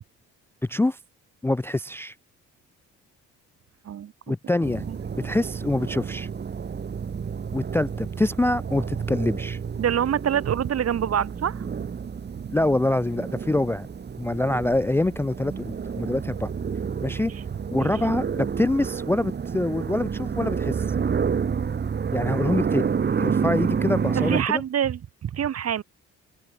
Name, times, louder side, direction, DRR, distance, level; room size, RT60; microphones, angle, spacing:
voice 1, 0.7-1.0 1.4-2.1 4.3-4.8 5.1-6.3 7.5-9.6 12.5-13.9 14.2-16.5 17.0-17.3 17.7-20.8 22.1-24.6, left 2 dB, 10° left, 0.4 m, -25 dB
sound 1, 4.6-24.4, right 6 dB, 35° right, 1.3 m, -29 dB
voice 2, 9.8-11.9 17.3-17.4 17.7-17.9 24.1-25.8, right 9 dB, 55° right, 1.7 m, -26 dB
open air
cardioid pair, 90°, 30 cm